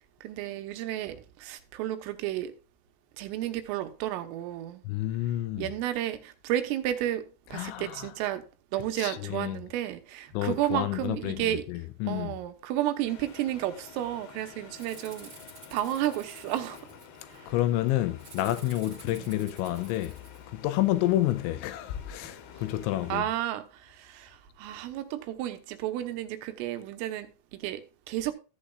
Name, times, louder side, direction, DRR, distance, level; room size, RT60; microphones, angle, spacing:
voice 1, 0.2-2.5 3.2-4.8 5.6-8.5 8.7-11.7 12.1-15.3 15.7-16.8 17.3-17.5 19.0-19.3 23.1-28.3, right 13 dB, 90° right, 3.6 m, -32 dB
voice 2, 4.9-5.7 7.5-8.1 9.0-9.6 10.3-11.4 11.7-12.3 17.5-20.2 20.5-23.2, left 14 dB, 80° left, 2.9 m, -29 dB
sound 1, 13.0-23.2, left 7 dB, 60° left, 2.6 m, -50 dB
Rattle (instrument), 14.7-17.4 18.2-20.4, right 3 dB, 30° right, 1.9 m, -51 dB
14.5 x 8.7 x 2.4 m
omnidirectional pair, 5.8 m